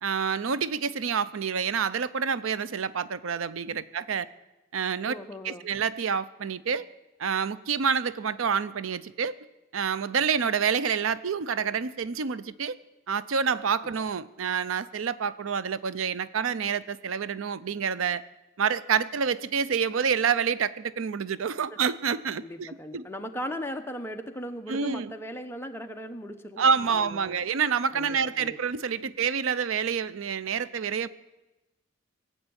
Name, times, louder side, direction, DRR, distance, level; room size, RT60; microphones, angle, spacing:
voice 1, 0.0-4.3 4.7-5.1 5.4-6.9 7.2-9.3 9.7-12.8 13.1-18.2 18.6-23.0 24.7-25.1 26.6-31.1, right 6 dB, 85° right, 16 dB, 0.5 m, -28 dB
voice 2, 5.0-5.7 22.4-27.4 27.9-28.6, equal, 10° left, 5 dB, 0.9 m, -38 dB
18.5 x 7.9 x 8.7 m, 1.0 s
head